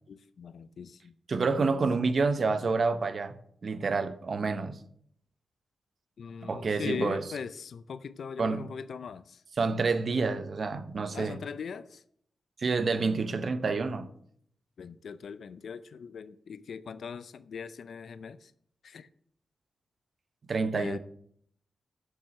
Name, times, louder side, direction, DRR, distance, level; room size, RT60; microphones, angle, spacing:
voice 1, 0.1-1.6 6.2-9.4 11.1-12.0 14.8-18.5 18.8-19.1 20.7-21.0, left 6 dB, 75° left, 0.5 m, -40 dB
voice 2, 1.3-3.4 3.6-4.8 6.4-7.2 8.4-8.7 9.6-11.4 12.6-14.1 20.5-21.0, right 4 dB, 55° right, 0.8 m, -28 dB
7.4 x 6.9 x 6.5 m
cardioid pair, 85°, 0 cm